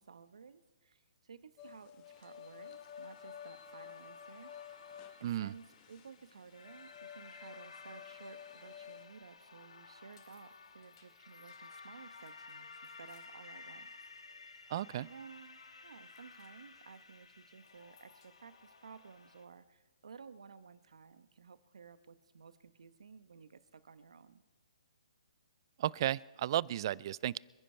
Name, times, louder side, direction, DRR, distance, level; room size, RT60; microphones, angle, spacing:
voice 1, 0.0-4.8 5.2-13.9 14.4-14.7 15.0-24.4, right 6 dB, 75° right, 13 dB, 1.0 m, -55 dB
sound 1, 1.6-9.1, left 9 dB, 25° left, 1.2 m, -52 dB
sound 2, 2.1-19.5, left 4 dB, 80° left, 1.9 m, -55 dB
voice 2, 5.2-5.5 14.7-15.1 25.8-27.4, right 12 dB, 45° right, 24 dB, 0.4 m, -34 dB
sound 3, 10.1-14.4 14.6-15.1 15.5-15.7 16.0-16.5 17.5-18.5, left 8 dB, 50° left, 3.6 m, -70 dB
27.5 x 10.0 x 4.5 m, 1.3 s
hypercardioid pair, 140°, 3 cm